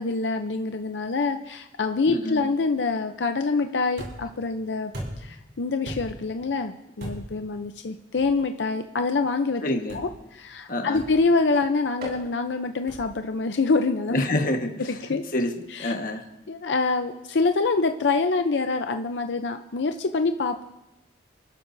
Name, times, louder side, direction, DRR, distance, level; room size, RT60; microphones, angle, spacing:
voice 1, 0.0-4.9 5.2-9.6 9.9-14.2 14.9-15.2 15.7-15.9 16.5-20.6, left 3 dB, 85° left, 7 dB, 0.6 m, -25 dB
voice 2, 2.1-2.5 9.6-10.0 10.7-11.1 14.1-16.2, left 1 dB, 50° left, 4 dB, 1.4 m, -28 dB
sound 1, 4.0-4.4 4.9-5.4 5.8-6.3 7.0-7.4 8.2-8.4 9.9-10.2 10.9-11.3 12.0-12.2 12.9-13.2, right 1 dB, 65° right, 5.0 m, -37 dB
29.5 x 12.0 x 2.7 m, 0.93 s
head